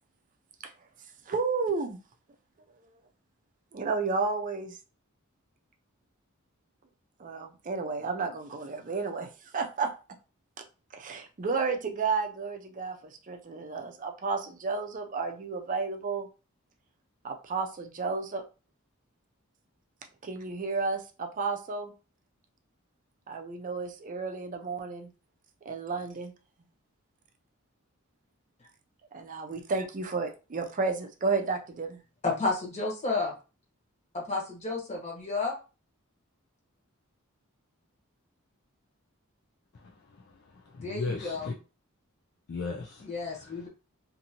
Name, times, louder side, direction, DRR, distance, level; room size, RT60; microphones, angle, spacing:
voice 1, 1.3-2.0 3.7-4.8 7.2-9.3 9.5-9.9 10.9-16.3 17.2-18.4 20.2-21.9 23.3-25.1 25.7-26.3 29.1-32.0, right 4 dB, 40° right, 4 dB, 0.5 m, -32 dB
voice 2, 32.2-33.3 34.1-35.5 40.8-41.5 43.0-43.7, left 3 dB, 35° left, -2 dB, 1.1 m, -31 dB
voice 3, 39.7-41.5 42.5-43.7, left 3 dB, 50° left, 0 dB, 0.4 m, -38 dB
2.7 x 2.6 x 2.8 m, 0.32 s
head